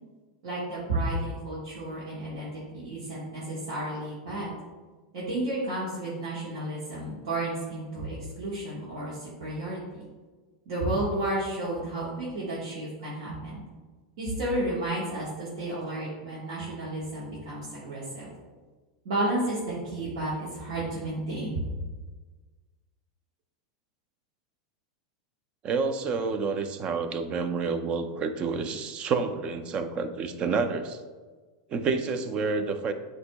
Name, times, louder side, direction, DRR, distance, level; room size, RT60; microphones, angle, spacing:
voice 1, 0.4-4.5 5.1-10.0 10.7-13.6 14.2-18.3 19.0-21.6, right 1 dB, 70° right, -8 dB, 1.2 m, -32 dB
voice 2, 25.6-31.0 31.7-32.9, right 4 dB, 35° right, 9 dB, 0.4 m, -29 dB
7.6 x 2.6 x 2.2 m, 1.3 s
hypercardioid pair, 110°, 3 cm